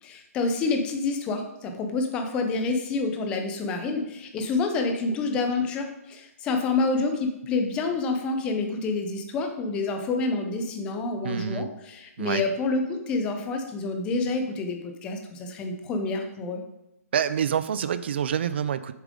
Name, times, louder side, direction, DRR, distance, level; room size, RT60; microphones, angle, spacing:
voice 1, 0.0-16.6, left 3 dB, 10° left, 5 dB, 0.6 m, -28 dB
voice 2, 11.2-11.7 12.2-12.4 17.1-18.9, right 8 dB, 45° right, 13 dB, 0.4 m, -27 dB
7.4 x 7.0 x 3.7 m, 0.89 s
hypercardioid pair, 170°, 8 cm